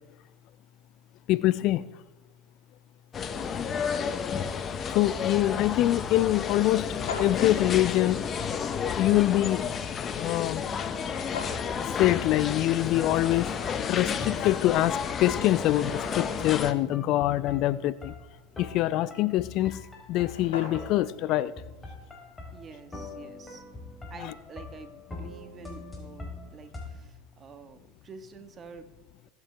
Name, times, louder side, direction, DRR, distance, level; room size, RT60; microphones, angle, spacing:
voice 1, 1.3-1.9 4.9-6.9 7.2-8.2 9.0-9.7 10.1-10.7 12.0-18.1 18.6-19.8 20.1-21.5, left 15 dB, 55° left, 18 dB, 0.4 m, -25 dB
sound 1, 3.1-16.7, left 6 dB, 35° left, 1.0 m, -31 dB
sound 2, 6.7-7.6 11.0-11.7 14.6-14.7 15.3-16.4 19.8-19.9 20.1-21.1, left 4 dB, 80° left, 3.1 m, -40 dB
sound 3, 11.3-26.9, left 2 dB, 20° left, 3.8 m, -44 dB
voice 2, 22.5-23.6 24.1-28.9, right 5 dB, 30° right, 8 dB, 1.5 m, -48 dB
21.5 x 8.2 x 3.4 m, 1.0 s
hypercardioid pair, 80°, 0 cm